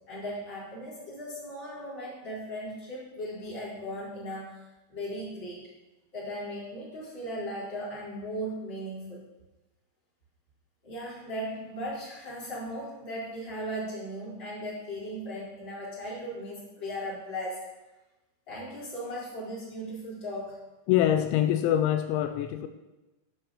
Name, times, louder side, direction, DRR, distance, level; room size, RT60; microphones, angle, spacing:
voice 1, 0.1-4.6 4.9-5.7 6.1-9.3 10.8-17.7 18.5-20.6, equal, 20° left, -7 dB, 4.4 m, -37 dB
voice 2, 20.9-22.7, left 11 dB, 90° left, 8 dB, 2.5 m, -24 dB
12.5 x 6.0 x 6.6 m, 1.0 s
omnidirectional pair, 5.9 m